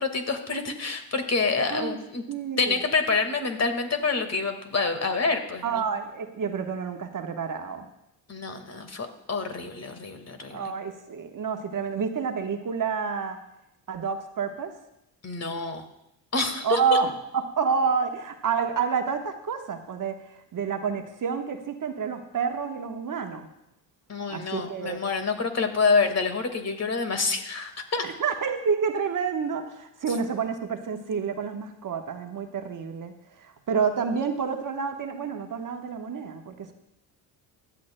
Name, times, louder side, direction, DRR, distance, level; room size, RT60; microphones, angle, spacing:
voice 1, 0.0-2.2 2.6-5.8 8.3-10.7 15.2-15.8 16.3-17.0 24.1-28.1, left 4 dB, 35° left, 6 dB, 1.8 m, -27 dB
voice 2, 2.3-2.8 5.6-7.8 10.5-13.4 13.9-14.7 16.6-23.5 24.3-25.0 28.0-36.7, right 6 dB, 45° right, 5 dB, 1.2 m, -29 dB
16.0 x 11.5 x 2.2 m, 0.84 s
supercardioid pair, 60°, 46 cm